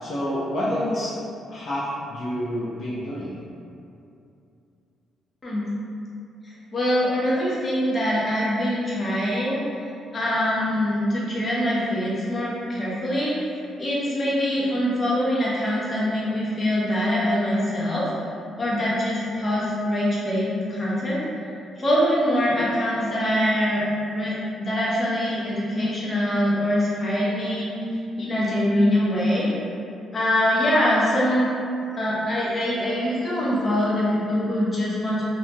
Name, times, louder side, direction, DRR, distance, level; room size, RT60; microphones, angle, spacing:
voice 1, 0.0-1.1 1.5-3.3, equal, 60° left, -8 dB, 0.5 m, -28 dB
voice 2, 6.4-9.6 10.1-18.3 18.6-21.3 21.8-29.5 30.1-31.5 31.9-35.2, equal, 35° left, -7 dB, 0.8 m, -24 dB
2.7 x 2.2 x 2.7 m, 2.6 s
cardioid pair, 90°, 0 cm